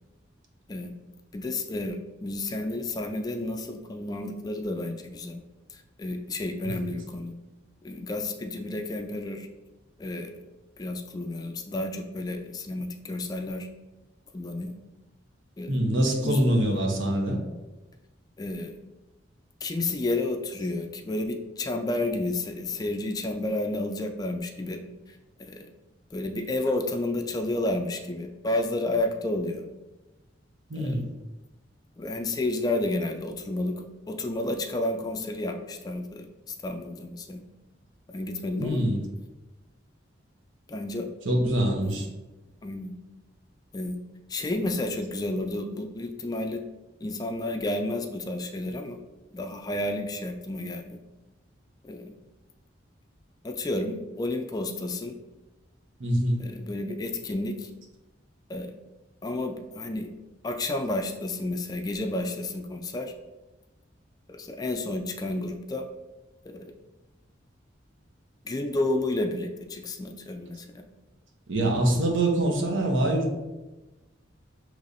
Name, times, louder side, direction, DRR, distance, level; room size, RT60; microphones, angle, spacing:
voice 1, 1.3-5.4 5.7-7.3 7.8-9.5 10.0-10.3 10.8-13.7 14.3-14.7 15.6-15.7 16.2-16.4 18.4-18.8 19.6-24.8 25.4-25.7 26.1-29.7 30.7-31.0 32.0-37.4 38.1-38.8 40.7-41.1 41.9-42.1 42.6-43.0 43.7-44.0 44.3-46.6 47.0-49.0 49.3-51.0 51.8-52.2 53.4-55.2 56.4-57.7 58.5-58.7 59.2-60.1 60.4-63.1 64.3-65.9 66.5-66.7 68.4-70.8, left 2 dB, 20° left, 5 dB, 0.3 m, -31 dB
voice 2, 15.7-17.4 30.7-31.1 38.6-39.0 41.2-42.1 56.0-56.4 71.5-73.3, right 1 dB, 80° right, 1 dB, 0.9 m, -24 dB
6.4 x 3.1 x 2.6 m, 1.1 s
head